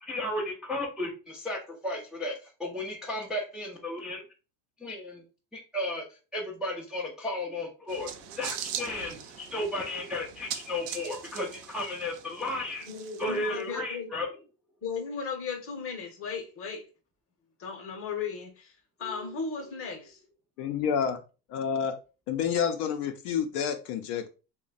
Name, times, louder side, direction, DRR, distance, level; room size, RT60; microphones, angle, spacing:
voice 1, 0.0-4.2 4.8-5.2 5.5-6.0 6.3-12.9 13.2-14.3 19.0-19.3, left 1 dB, ahead, 0.4 m, -34 dB
sound 1, 7.9-13.6, right 8 dB, 50° right, 0.5 m, -41 dB
voice 2, 12.8-14.1 14.8-16.9 17.6-20.2, left 5 dB, 30° left, 0.9 m, -36 dB
voice 3, 20.6-21.2 21.5-22.0 22.3-24.3, left 7 dB, 60° left, 0.6 m, -29 dB
3.0 x 2.2 x 3.8 m
supercardioid pair, 140°, 44 cm